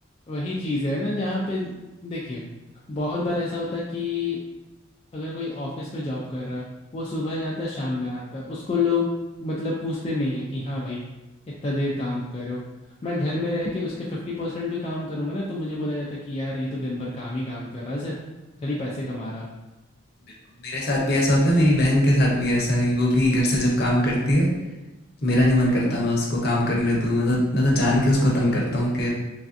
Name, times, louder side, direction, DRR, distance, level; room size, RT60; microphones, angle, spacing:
voice 1, 0.3-1.7 2.0-2.4 2.9-4.4 5.1-6.6 6.9-9.1 9.4-11.0 11.6-12.6 13.0-18.1 18.6-19.5, left 2 dB, 30° left, -5 dB, 0.3 m, -28 dB
voice 2, 20.6-24.5 25.2-29.1, left 1 dB, 50° left, -3 dB, 0.7 m, -21 dB
3.2 x 2.4 x 2.5 m, 1.1 s
head